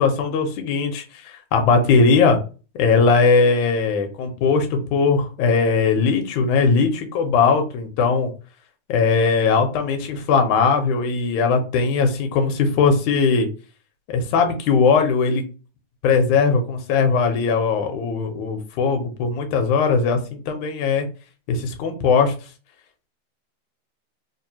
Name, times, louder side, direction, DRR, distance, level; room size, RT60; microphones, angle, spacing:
voice 1, 0.0-2.4 2.8-8.3 8.9-13.5 14.1-15.4 16.0-21.1 21.5-22.4, left 5 dB, 75° left, 5 dB, 2.1 m, -19 dB
4.8 x 2.2 x 2.8 m, 0.34 s
omnidirectional pair, 3.5 m